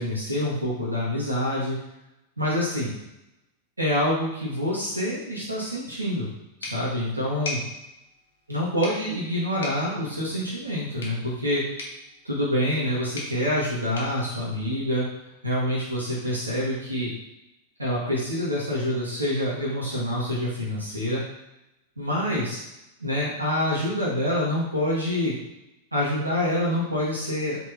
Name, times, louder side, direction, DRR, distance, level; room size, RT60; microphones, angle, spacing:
voice 1, 0.0-1.8 2.4-2.9 3.8-6.3 6.6-7.6 8.5-11.6 12.2-15.1 15.4-17.1 17.8-21.2 22.0-22.6 23.0-25.3 25.9-27.6, left 1 dB, 80° right, -6 dB, 2.0 m, -26 dB
sound 1, 6.6-15.3, left 2 dB, 65° left, 1.5 m, -41 dB
5.1 x 4.6 x 4.3 m, 0.89 s
figure-of-eight pair, 90°, 0 cm